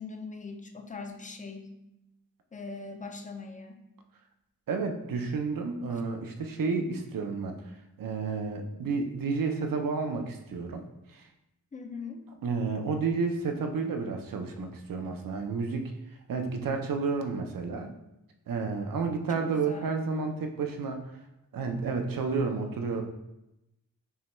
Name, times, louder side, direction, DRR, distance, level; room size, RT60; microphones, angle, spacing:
voice 1, 0.0-1.7 2.5-3.8 11.7-12.3 19.3-19.9, left 4 dB, 25° left, 3 dB, 0.4 m, -41 dB
voice 2, 4.7-7.6 8.0-10.8 11.1-11.3 12.4-15.9 16.3-17.9 18.5-21.0 21.5-23.0, right 4 dB, 70° right, 5 dB, 0.6 m, -31 dB
5.4 x 2.2 x 3.0 m, 0.90 s
wide cardioid pair, 135°, 35 cm